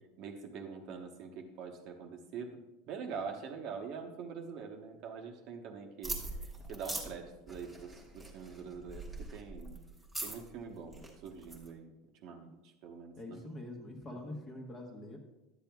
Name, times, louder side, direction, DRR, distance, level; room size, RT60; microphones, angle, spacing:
voice 1, 0.2-6.2 6.7-9.8 10.2-11.9 12.2-12.5 12.8-13.4 14.1-14.2, right 6 dB, 40° right, 3 dB, 0.9 m, -44 dB
sound 1, 6.0-11.7, right 2 dB, ahead, 1.2 m, -43 dB
voice 2, 13.2-15.2, left 1 dB, 20° left, 2 dB, 1.1 m, -44 dB
11.5 x 8.8 x 2.3 m, 1.0 s
supercardioid pair, 170°, 0 cm